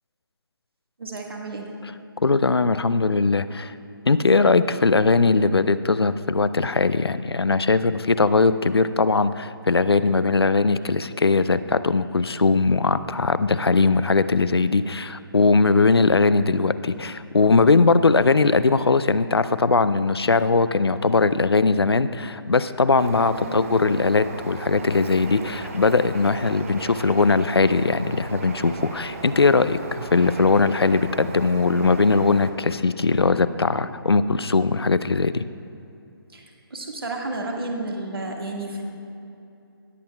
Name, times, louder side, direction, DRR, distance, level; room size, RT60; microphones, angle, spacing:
voice 1, 1.0-1.7 23.4-23.6 36.3-36.4 36.7-38.8, right 2 dB, 70° right, 0 dB, 1.7 m, -31 dB
voice 2, 2.2-3.7 4.1-35.4, left 4 dB, 85° left, 14 dB, 0.4 m, -20 dB
Bird, 23.0-32.5, right 3 dB, 35° right, 0.7 m, -37 dB
19.0 x 8.5 x 2.3 m, 2.8 s
figure-of-eight pair, 150°, 13 cm